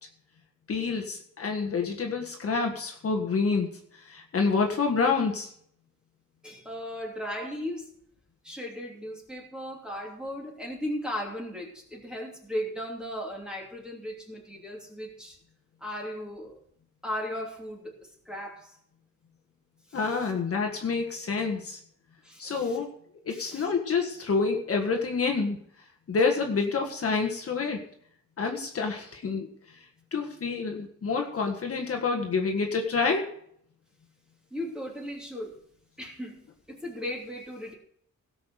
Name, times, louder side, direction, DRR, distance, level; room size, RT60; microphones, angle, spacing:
voice 1, 0.7-5.5 19.9-21.8 22.4-22.9 23.2-25.6 26.1-27.8 28.4-29.5 30.1-33.4, left 4 dB, 50° left, 2 dB, 1.7 m, -28 dB
voice 2, 6.4-7.9 8.4-15.4 15.8-16.5 17.0-18.8 19.9-20.3 22.2-22.8 23.3-23.7 34.5-35.5 36.0-37.7, equal, 5° right, -2 dB, 3.0 m, -37 dB
17.5 x 6.0 x 6.4 m, 0.64 s
wide cardioid pair, 170°, 31 cm